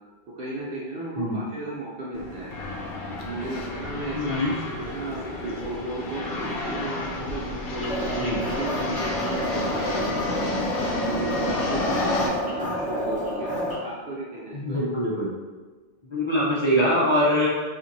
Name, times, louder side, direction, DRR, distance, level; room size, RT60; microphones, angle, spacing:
voice 1, 0.4-2.5 3.2-10.4 11.0-13.5 13.8-14.8, right 1 dB, 65° right, -6 dB, 0.8 m, -34 dB
sound 1, 2.1-12.3, left 2 dB, 65° left, 0.7 m, -31 dB
voice 2, 4.1-4.5 8.2-8.4 14.5-15.3 16.1-17.5, equal, 35° left, -8 dB, 0.6 m, -23 dB
sound 2, 7.8-13.8, equal, 10° right, 0.6 m, -29 dB
4.4 x 2.5 x 2.6 m, 1.3 s
omnidirectional pair, 1.1 m